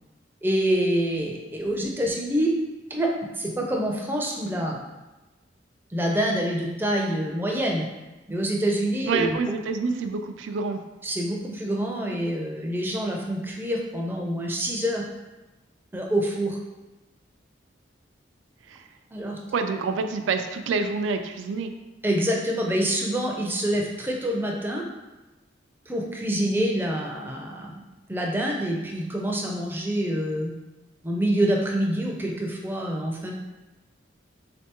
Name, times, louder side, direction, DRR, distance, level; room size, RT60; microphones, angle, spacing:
voice 1, 0.4-2.5 2.9-3.1 3.3-4.8 5.9-7.9 8.3-9.4 11.0-15.0 15.9-16.6 19.1-19.4 22.0-24.8 25.9-27.8 28.1-30.5 31.0-33.3, right 1 dB, 10° right, -1 dB, 0.4 m, -26 dB
voice 2, 9.1-10.8 18.7-18.8 19.5-21.7, right 4 dB, 85° right, 7 dB, 0.3 m, -27 dB
3.5 x 3.3 x 2.9 m, 1.1 s
head